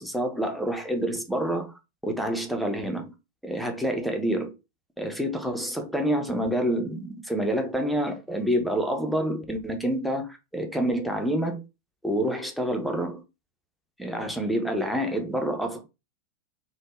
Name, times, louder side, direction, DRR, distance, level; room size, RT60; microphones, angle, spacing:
voice 1, 0.0-3.1 3.4-4.5 5.0-11.6 12.0-13.2 14.0-15.8, equal, ahead, 0.5 m, -28 dB
3.4 x 2.1 x 2.3 m
figure-of-eight pair, 90°, 0 cm